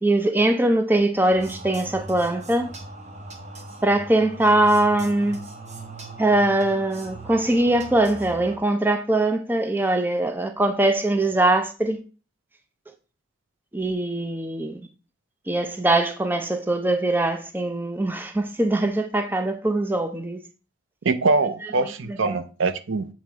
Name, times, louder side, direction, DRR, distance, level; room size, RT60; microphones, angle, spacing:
voice 1, 0.0-2.7 3.8-5.4 6.2-12.0 13.7-14.8 15.5-20.4 22.2-22.4, right 1 dB, 10° right, 0.5 m, -22 dB
sound 1, 1.2-8.6, right 2 dB, 35° right, 1.0 m, -40 dB
voice 2, 21.0-23.1, right 3 dB, 70° right, 0.5 m, -23 dB
7.5 x 3.1 x 4.7 m
head